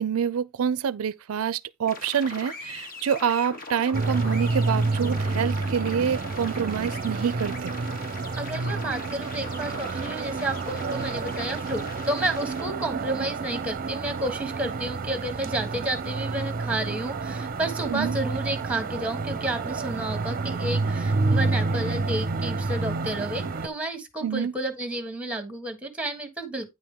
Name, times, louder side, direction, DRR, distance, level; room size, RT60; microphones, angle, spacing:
voice 1, 0.0-7.7 17.9-18.2 24.2-24.5, right 7 dB, 85° right, 0.4 m, -27 dB
sound 1, 1.8-12.6, left 3 dB, 45° left, 1.4 m, -41 dB
sound 2, 3.9-23.7, right 3 dB, 40° right, 0.6 m, -29 dB
voice 2, 8.4-26.7, right 1 dB, 5° right, 1.5 m, -31 dB
9.5 x 5.0 x 3.7 m
head